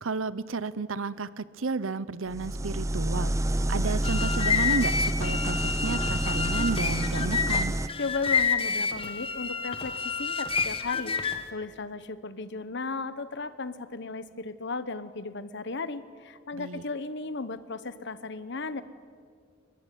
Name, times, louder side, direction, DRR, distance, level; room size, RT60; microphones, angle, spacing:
voice 1, 0.0-7.8 16.5-16.8, right 4 dB, 75° right, 18 dB, 0.8 m, -32 dB
sound 1, 2.3-7.9, right 1 dB, 15° right, 0.7 m, -28 dB
sound 2, 3.9-11.5, left 5 dB, 30° left, 1.3 m, -29 dB
voice 2, 8.0-18.8, left 3 dB, 60° left, 14 dB, 1.1 m, -35 dB
22.5 x 21.0 x 9.3 m, 2.1 s
head